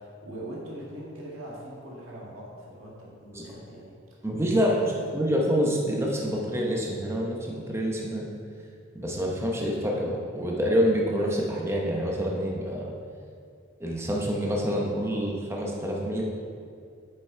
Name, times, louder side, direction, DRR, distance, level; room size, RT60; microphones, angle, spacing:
voice 1, 0.0-3.9 4.4-5.0, right 1 dB, 85° right, -4 dB, 1.9 m, -41 dB
voice 2, 4.2-4.8 5.1-8.3 8.9-12.9 13.8-16.2, equal, 15° right, -2 dB, 0.9 m, -27 dB
7.0 x 6.0 x 4.5 m, 2.3 s
head